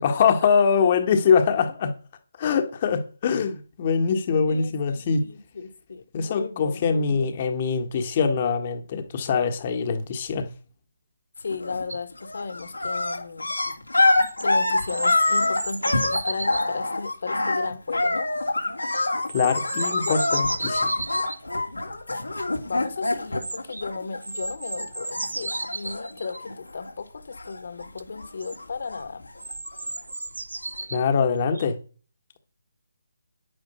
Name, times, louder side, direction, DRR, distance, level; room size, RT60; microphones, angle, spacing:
voice 1, 0.0-1.9 2.4-5.3 6.1-10.5 19.3-20.9 30.9-31.8, left 6 dB, 35° left, 1.6 m, -23 dB
voice 2, 4.5-7.3 11.4-13.5 14.4-18.3 20.1-20.3 22.7-29.2, left 4 dB, 60° left, 2.0 m, -35 dB
sound 1, 11.5-11.9 12.2-24.5 24.8-26.9 27.2-27.9 28.2-30.0 30.7-30.8, left 2 dB, 85° left, 2.7 m, -26 dB
sound 2, 11.9-12.0 14.0-16.7 18.9-21.4 23.4-23.9 24.2-26.4 28.0-28.1 28.4-28.6 29.4-31.0 31.5-31.7, right 3 dB, 75° right, 0.7 m, -34 dB
9.7 x 8.9 x 5.6 m
figure-of-eight pair, 150°, 0 cm